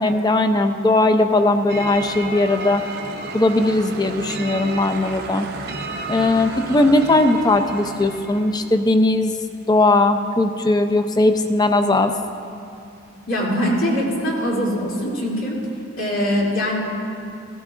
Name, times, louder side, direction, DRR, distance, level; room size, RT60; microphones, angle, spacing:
voice 1, 0.0-2.8 3.3-5.5 6.1-9.4 9.7-12.1, left 2 dB, 20° left, 7 dB, 0.5 m, -18 dB
sound 1, 1.7-8.7, right 3 dB, 55° right, 0.8 m, -32 dB
voice 2, 13.3-15.6 16.0-16.8, equal, 85° left, -5 dB, 2.8 m, -22 dB
16.5 x 13.0 x 2.5 m, 2.7 s
head